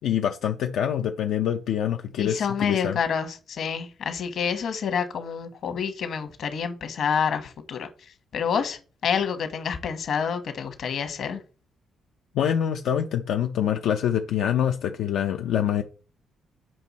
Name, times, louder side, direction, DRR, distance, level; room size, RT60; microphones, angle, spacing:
voice 1, 0.0-3.0 12.3-15.8, left 9 dB, 70° left, 0.6 m, -25 dB
voice 2, 2.2-11.4, left 7 dB, 45° left, 1.2 m, -28 dB
7.8 x 5.4 x 4.1 m
cardioid pair, 175°, 0 cm